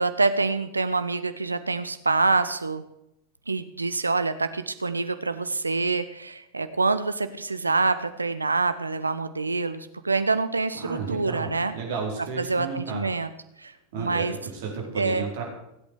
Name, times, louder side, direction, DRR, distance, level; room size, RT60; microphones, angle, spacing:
voice 1, 0.0-2.8 3.5-11.7 12.4-13.3 13.6-14.3 15.0-15.2, right 3 dB, 80° right, 11 dB, 0.7 m, -26 dB
voice 2, 10.8-13.0 13.9-15.4, right 5 dB, 55° right, 0 dB, 4.3 m, -33 dB
16.5 x 8.3 x 6.6 m, 0.82 s
figure-of-eight pair, 90°, 0 cm